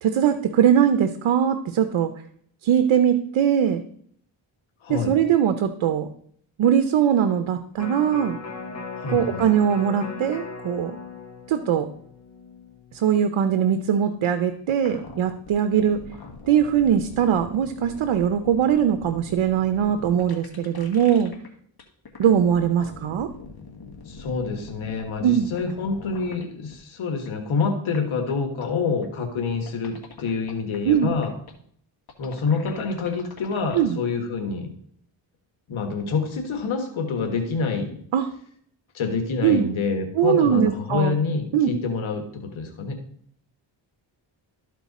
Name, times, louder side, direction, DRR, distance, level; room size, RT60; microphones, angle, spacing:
voice 1, 0.0-2.1 2.6-3.8 4.9-6.1 6.6-8.4 9.1-11.0 11.5-11.9 12.9-16.0 16.5-21.3 22.2-23.3 25.2-25.5 30.9-31.1 33.7-34.0 38.1-38.3 39.4-39.7 40.2-41.1 41.5-41.7, right 9 dB, 85° right, 9 dB, 0.7 m, -21 dB
voice 2, 4.8-5.1 8.9-9.5 24.0-31.3 32.2-34.7 35.7-38.0 38.9-43.0, left 4 dB, 85° left, 4 dB, 1.5 m, -27 dB
Electric guitar, 7.8-14.0 14.4-14.5, left 4 dB, 35° left, 1.4 m, -38 dB
sound 1, 14.8-21.5 21.8-26.4 26.7-26.8 27.2-27.3 27.6-27.7 27.9-28.0 28.3-28.4 28.6-28.7 29.0-29.1 29.7-31.5 32.1-33.8, left 4 dB, 50° left, 1.5 m, -43 dB
13.0 x 4.5 x 4.1 m, 0.64 s
cardioid pair, 85°, 47 cm